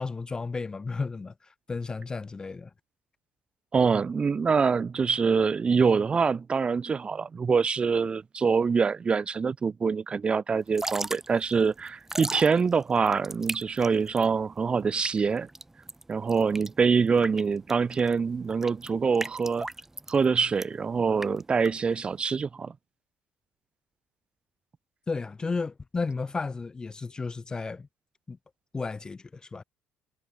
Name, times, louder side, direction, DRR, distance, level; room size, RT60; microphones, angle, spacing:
voice 1, 0.0-2.7 25.1-27.9 28.3-28.4 28.7-29.6, left 4 dB, 20° left, 0.5 m, -33 dB
voice 2, 3.7-15.5 16.1-19.7 20.1-22.7, right 5 dB, 30° right, 0.6 m, -25 dB
Drip / Trickle dribble, 10.6-22.2, right 2 dB, 10° right, 1.2 m, -39 dB
cardioid pair, 115°, 4 cm